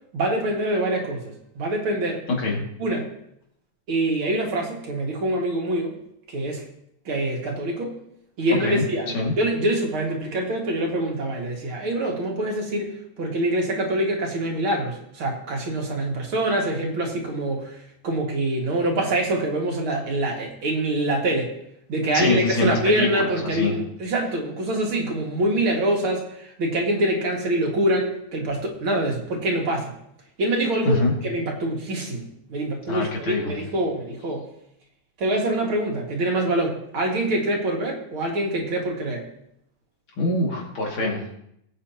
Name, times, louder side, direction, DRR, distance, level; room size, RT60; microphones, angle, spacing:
voice 1, 0.1-2.2 2.8-3.1 3.9-6.0 6.3-6.6 7.1-7.9 8.4-17.8 18.0-21.5 21.9-29.9 30.4-34.4 35.2-39.3 41.0-41.1, right 1 dB, 75° right, 0 dB, 2.9 m, -25 dB
voice 2, 22.1-23.7 30.8-31.1 32.9-33.5 40.2-41.3, left 2 dB, 75° left, -2 dB, 3.2 m, -24 dB
19.5 x 8.5 x 2.9 m, 0.74 s
omnidirectional pair, 2.3 m